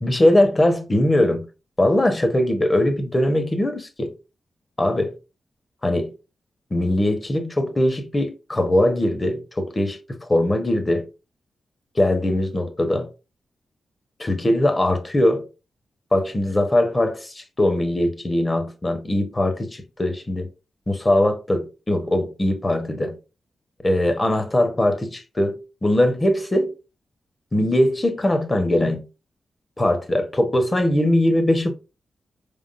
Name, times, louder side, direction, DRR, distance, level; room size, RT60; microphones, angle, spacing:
voice 1, 0.0-1.5 1.8-4.1 4.8-5.1 5.8-6.1 6.7-11.1 12.0-13.1 14.2-15.5 16.1-20.5 20.9-23.2 23.8-26.7 27.5-29.1 29.8-31.7, left 1 dB, 30° left, 1.2 m, -21 dB
5.0 x 3.6 x 2.6 m
supercardioid pair, 40°, 0 cm